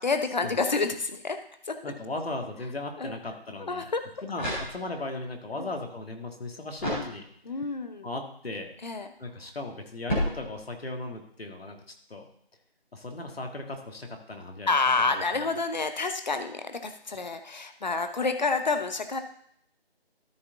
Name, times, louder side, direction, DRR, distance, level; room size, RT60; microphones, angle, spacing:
voice 1, 0.0-1.4 1.7-1.9 3.0-3.1 3.6-4.1 5.6-5.7 7.5-8.1 8.8-9.1 14.7-19.2, left 4 dB, 45° left, 8 dB, 0.9 m, -28 dB
voice 2, 1.8-3.9 4.2-7.3 8.0-8.7 9.2-11.8 12.1-12.3 12.9-15.4, left 2 dB, 75° left, 3 dB, 1.9 m, -37 dB
sound 1, 4.3-5.2 6.8-7.7 10.1-11.0, equal, 10° left, 2.5 m, -33 dB
13.0 x 4.8 x 4.0 m, 0.66 s
figure-of-eight pair, 170°, 31 cm